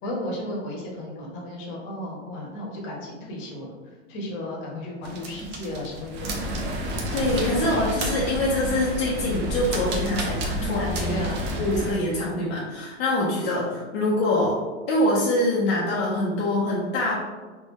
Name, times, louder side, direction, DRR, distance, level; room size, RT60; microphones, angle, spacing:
voice 1, 0.0-6.6 10.6-11.4, left 1 dB, 35° left, -3 dB, 1.1 m, -34 dB
sound 1, 5.0-11.9, right 1 dB, 30° right, 0.5 m, -30 dB
voice 2, 7.1-11.2 11.6-14.6 14.9-17.2, left 1 dB, 55° left, -5 dB, 0.9 m, -24 dB
3.4 x 2.6 x 3.1 m, 1.3 s
hypercardioid pair, 130°, 37 cm